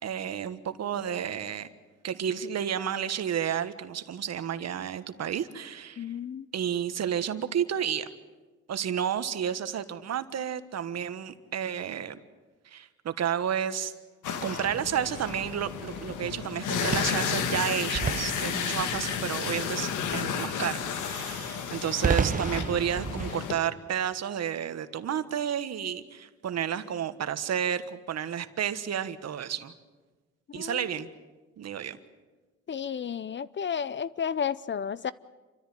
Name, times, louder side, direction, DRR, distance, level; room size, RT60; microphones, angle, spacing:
voice 1, 0.0-1.7 2.0-6.0 6.5-8.1 8.7-12.2 12.6-13.9 14.4-29.7 30.5-31.1 31.6-32.0, right 9 dB, 60° right, 11 dB, 1.4 m, -31 dB
voice 2, 6.0-6.5 30.5-30.9 32.7-35.1, left 7 dB, 40° left, 18 dB, 0.7 m, -32 dB
sound 1, 14.2-23.6, left 7 dB, 80° left, 1.9 m, -32 dB
sound 2, 14.7-23.3, right 6 dB, 25° right, 0.7 m, -35 dB
28.5 x 14.0 x 9.4 m, 1.3 s
cardioid pair, 90°, 30 cm